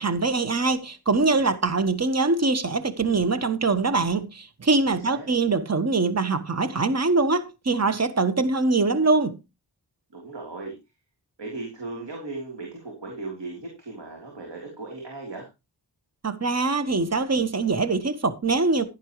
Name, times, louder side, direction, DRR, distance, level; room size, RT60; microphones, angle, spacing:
voice 1, 0.0-9.4 16.2-18.8, right 3 dB, 40° right, 1.3 m, -23 dB
voice 2, 4.8-5.3 10.1-10.7 11.4-15.5, right 3 dB, 90° right, 3.5 m, -37 dB
11.5 x 11.0 x 3.1 m
wide cardioid pair, 55°, 41 cm